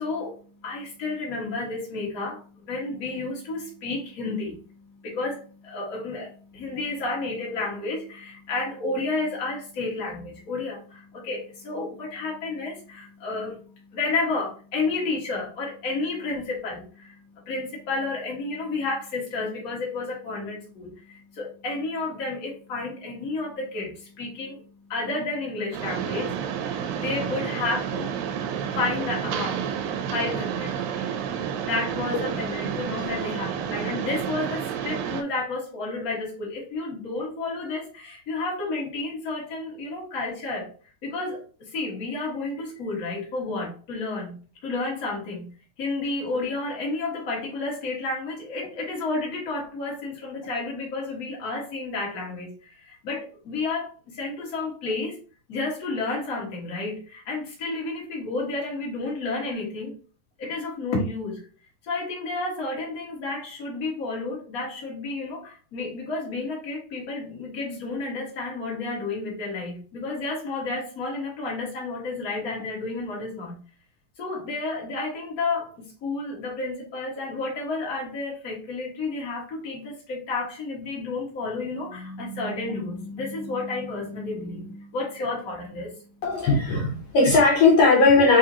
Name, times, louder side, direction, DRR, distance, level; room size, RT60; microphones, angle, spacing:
voice 1, 0.0-28.2 28.5-29.8 30.1-31.1 31.6-40.7 41.0-55.2 55.5-59.9 60.4-61.4 61.8-73.6 74.2-86.2, left 3 dB, 40° left, -3 dB, 1.2 m, -31 dB
Mechanisms, 25.7-35.2, right 8 dB, 85° right, 2.4 m, -30 dB
voice 2, 86.2-88.4, left 3 dB, 85° left, -3 dB, 1.3 m, -18 dB
7.1 x 2.5 x 2.8 m, 0.39 s
omnidirectional pair, 4.0 m